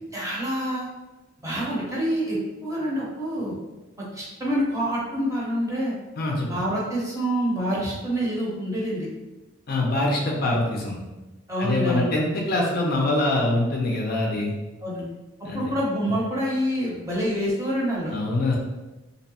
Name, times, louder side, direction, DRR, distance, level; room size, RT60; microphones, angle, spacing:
voice 1, 0.1-0.9 1.4-3.5 4.0-5.9 6.5-9.1 11.5-12.1 14.8-15.0 15.5-18.1, equal, 15° right, -6 dB, 0.7 m, -26 dB
voice 2, 6.2-6.5 9.7-11.0 11.6-14.5 15.4-15.6 18.1-18.6, left 2 dB, 50° left, -1 dB, 0.4 m, -24 dB
2.6 x 2.0 x 2.8 m, 1.1 s
head